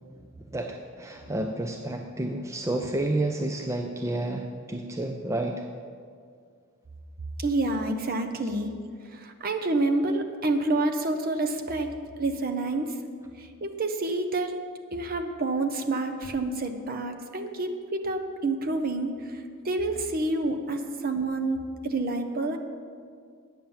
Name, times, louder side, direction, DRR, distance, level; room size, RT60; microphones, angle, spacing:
voice 1, 0.2-5.6, right 1 dB, 15° right, 3 dB, 0.4 m, -30 dB
voice 2, 7.4-8.7 9.1-11.9 12.2-13.0 13.4-14.6 14.9-22.6, right 2 dB, 40° right, 5 dB, 0.8 m, -28 dB
9.2 x 7.3 x 7.1 m, 2.2 s
head